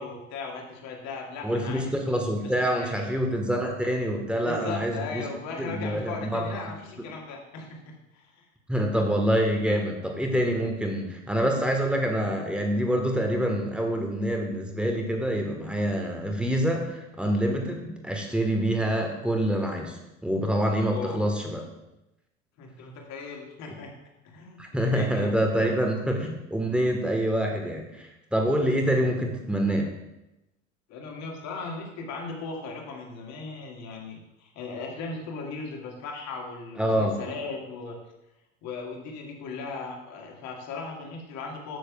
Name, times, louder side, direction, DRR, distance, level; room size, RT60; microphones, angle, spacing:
voice 1, 0.0-3.1 4.4-8.5 20.8-21.5 22.6-23.9 24.2-25.7 30.9-38.0 38.6-41.8, left 4 dB, 45° left, 0 dB, 2.1 m, -38 dB
voice 2, 1.4-5.2 5.6-6.7 8.7-21.6 24.6-29.9 36.8-37.2, equal, 5° right, 2 dB, 1.5 m, -26 dB
14.5 x 6.5 x 2.4 m, 0.93 s
figure-of-eight pair, 75°, 39 cm